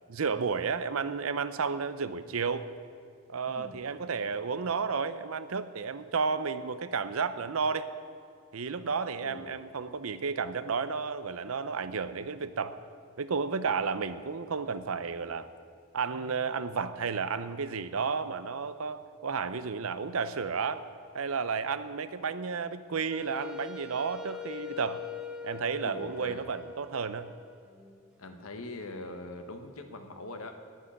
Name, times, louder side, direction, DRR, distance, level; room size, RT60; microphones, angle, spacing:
voice 1, 0.1-2.7 3.3-7.9 8.5-12.8 13.2-15.5 15.9-20.8 21.1-25.1 25.4-27.3, right 5 dB, 75° right, 13 dB, 0.6 m, -32 dB
voice 2, 3.5-3.8 9.2-9.6 25.8-26.4 28.2-30.6, left 2 dB, 75° left, 6 dB, 1.3 m, -42 dB
Wind instrument woodwind instrument, 23.1-28.0, left 5 dB, 5° right, 1.1 m, -43 dB
10.5 x 9.3 x 8.4 m, 2.3 s
head